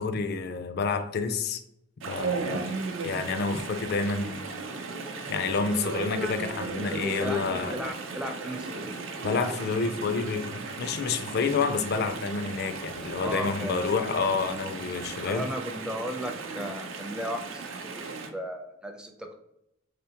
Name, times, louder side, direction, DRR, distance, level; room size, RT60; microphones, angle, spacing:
voice 1, 0.0-1.6 2.1-2.4 3.0-4.4 5.3-7.8 9.2-15.5, left 4 dB, 50° left, 9 dB, 0.4 m, -29 dB
Chatter / Stream, 2.0-18.3, right 3 dB, 75° right, 0.5 m, -36 dB
voice 2, 2.4-2.7 7.2-8.9 13.2-13.8 15.3-17.7 17.9-18.0 18.3-19.3, equal, 5° right, 3 dB, 0.5 m, -35 dB
3.7 x 3.4 x 2.8 m, 0.79 s
head